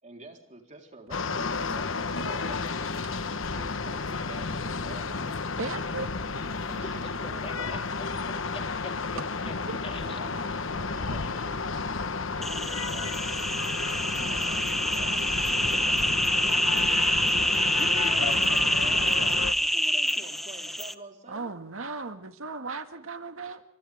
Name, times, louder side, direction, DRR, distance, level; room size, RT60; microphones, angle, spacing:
voice 1, 0.0-3.0 3.6-5.3 6.7-7.8 10.0-13.3 14.1-16.9 18.3-21.5, right 2 dB, 35° right, 3.9 m, -47 dB
sound 1, 1.1-19.5, left 4 dB, 70° left, 1.2 m, -32 dB
voice 2, 5.6-6.1 9.7-9.8 21.3-23.6, right 4 dB, 90° right, 2.0 m, -36 dB
voice 3, 6.8-9.5 9.8-10.2 17.6-18.6, left 1 dB, 30° left, 3.5 m, -43 dB
sound 2, 12.4-20.9, equal, ahead, 1.0 m, -26 dB
29.5 x 25.5 x 3.6 m
head